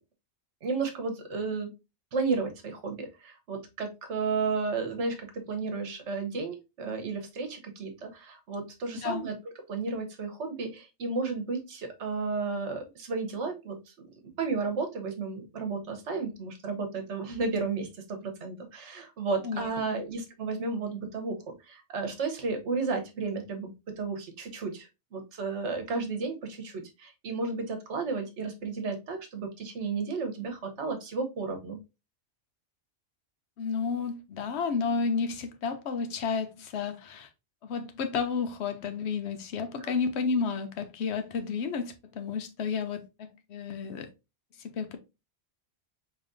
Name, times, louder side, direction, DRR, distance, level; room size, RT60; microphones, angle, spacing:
voice 1, 0.6-1.7 2.1-9.3 9.7-14.1 14.4-31.8 39.8-39.9, right 4 dB, 75° right, 1.2 m, -33 dB
voice 2, 8.9-9.3 19.4-19.7 19.9-20.0 33.6-37.3 37.6-44.1 44.6-45.0, left 5 dB, 70° left, 0.9 m, -31 dB
4.8 x 3.0 x 2.5 m
omnidirectional pair, 1.2 m